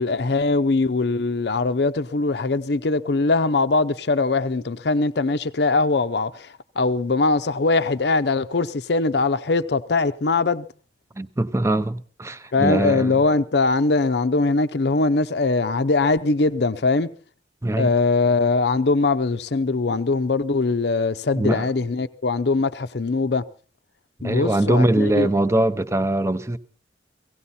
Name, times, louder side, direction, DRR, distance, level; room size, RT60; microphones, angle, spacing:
voice 1, 0.0-10.7 12.5-17.1 17.8-23.4 24.2-25.3, left 3 dB, 60° left, 0.6 m, -21 dB
voice 2, 11.2-13.1 17.6-17.9 21.3-21.7 24.2-26.6, right 1 dB, 15° right, 0.7 m, -22 dB
17.0 x 17.0 x 4.2 m
head